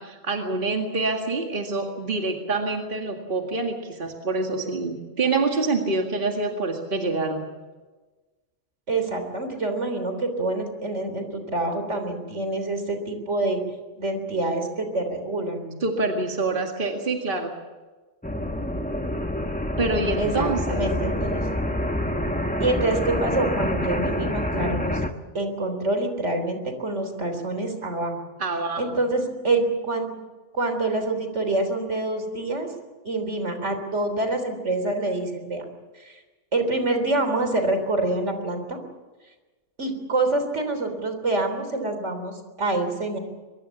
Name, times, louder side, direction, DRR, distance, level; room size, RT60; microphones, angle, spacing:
voice 1, 0.0-7.5 15.8-17.5 19.8-20.8 28.4-28.8, right 3 dB, 45° right, 2 dB, 2.2 m, -26 dB
voice 2, 8.9-13.6 14.0-15.8 20.2-21.5 22.6-25.0 25.3-28.2 28.8-30.2 30.5-32.7 33.0-35.6 35.9-36.2 36.5-38.8 39.8-43.2, right 2 dB, 80° right, 6 dB, 3.9 m, -26 dB
sound 1, 18.2-25.1, left 1 dB, 5° left, 1.2 m, -27 dB
23.0 x 23.0 x 7.2 m, 1.3 s
omnidirectional pair, 1.2 m